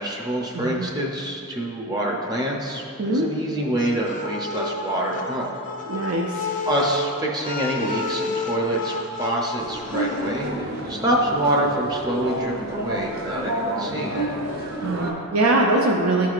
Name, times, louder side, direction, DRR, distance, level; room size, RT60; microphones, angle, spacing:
voice 1, 0.0-5.5 6.7-14.2, right 1 dB, 20° right, -2 dB, 0.6 m, -26 dB
voice 2, 0.5-0.9 3.0-3.3 5.9-6.5 14.8-16.3, right 2 dB, 80° right, -1 dB, 0.6 m, -22 dB
sound 1, 3.8-10.5, left 3 dB, 35° left, 0.4 m, -31 dB
sound 2, 9.6-15.1, right 1 dB, 45° right, 0.9 m, -29 dB
13.0 x 4.6 x 2.5 m, 2.6 s
head